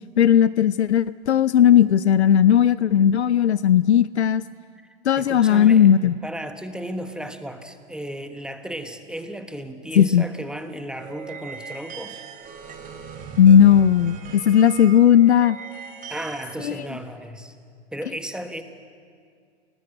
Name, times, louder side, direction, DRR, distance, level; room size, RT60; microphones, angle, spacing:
voice 1, 0.2-4.4 5.0-6.2 10.0-10.2 13.4-15.6 16.6-16.8, left 9 dB, 85° left, 17 dB, 0.6 m, -16 dB
voice 2, 5.2-5.9 6.2-12.2 16.1-17.5 17.9-18.6, equal, ahead, 8 dB, 1.3 m, -34 dB
sound 1, 10.9-16.6, right 6 dB, 25° right, 3.4 m, -39 dB
29.0 x 19.0 x 7.8 m, 2.2 s
hypercardioid pair, 110°, 33 cm